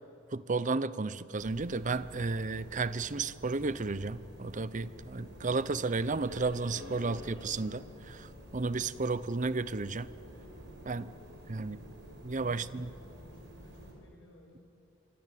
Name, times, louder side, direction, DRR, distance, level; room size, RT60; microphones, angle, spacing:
voice 1, 0.3-10.1 10.9-11.1 11.5-11.8 12.2-12.9, right 3 dB, 40° right, 16 dB, 0.7 m, -33 dB
sound 1, 1.4-13.9, equal, 60° right, 6.4 m, -49 dB
Acoustic guitar, 6.7-10.8, left 3 dB, 45° left, 7.5 m, -55 dB
voice 2, 11.5-11.8 12.4-14.7, left 1 dB, 75° left, -1 dB, 6.1 m, -58 dB
26.5 x 24.5 x 8.3 m, 2.6 s
head